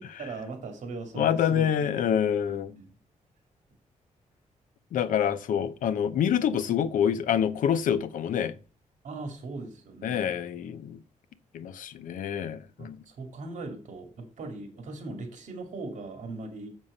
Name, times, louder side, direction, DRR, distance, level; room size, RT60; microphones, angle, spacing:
voice 1, 0.0-1.7 2.0-2.2 2.8-3.0 9.0-10.4 12.8-16.7, right 3 dB, 65° right, 2.2 m, -39 dB
voice 2, 1.1-2.7 4.9-8.5 10.0-11.0 11.5-13.0, left 9 dB, 90° left, 0.7 m, -26 dB
7.3 x 6.1 x 5.4 m
wide cardioid pair, 160°, 13 cm